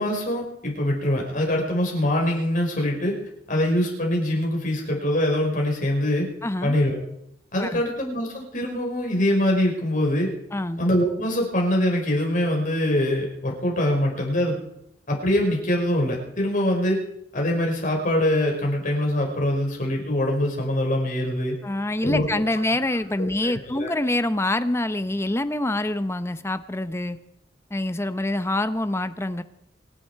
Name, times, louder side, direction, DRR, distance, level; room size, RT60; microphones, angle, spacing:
voice 1, 0.0-3.2 3.5-6.3 6.6-7.0 7.5-10.3 10.8-14.6 15.1-17.0 17.3-21.6 22.0-22.3 23.4-23.9, left 1 dB, 45° left, 0 dB, 5.2 m, -23 dB
voice 2, 6.4-6.8 7.6-7.8 10.5-10.8 21.6-27.2 27.7-29.4, left 1 dB, 15° left, 12 dB, 0.7 m, -26 dB
25.5 x 10.5 x 4.6 m, 0.76 s
head